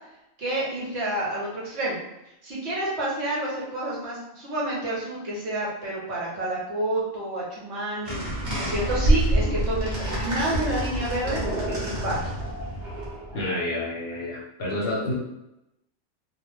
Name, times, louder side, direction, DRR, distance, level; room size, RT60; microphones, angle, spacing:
voice 1, 0.4-2.0 2.4-11.4 11.7-12.3, right 1 dB, 65° right, -5 dB, 1.1 m, -29 dB
sound 1, 8.1-13.4, right 1 dB, 45° right, 0.9 m, -27 dB
voice 2, 13.3-15.1, left 1 dB, 55° left, -5 dB, 0.9 m, -29 dB
2.4 x 2.1 x 3.2 m, 0.88 s
omnidirectional pair, 1.3 m